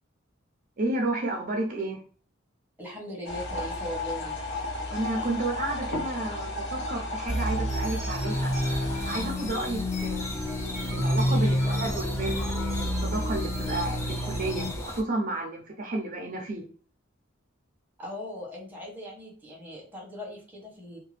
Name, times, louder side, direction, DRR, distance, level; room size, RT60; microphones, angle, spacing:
voice 1, 0.8-2.0 4.9-8.5 9.0-10.4 10.9-16.7, right 2 dB, 40° right, 1 dB, 0.5 m, -32 dB
voice 2, 2.8-4.4 11.2-11.8 18.0-21.0, left 1 dB, 10° right, -3 dB, 1.0 m, -39 dB
sound 1, 3.3-9.3, left 1 dB, 60° left, 0.7 m, -34 dB
sound 2, 7.3-14.7, equal, 35° left, 1.3 m, -29 dB
sound 3, 8.3-15.0, left 1 dB, 15° left, 0.4 m, -37 dB
2.7 x 2.2 x 3.2 m, 0.41 s
head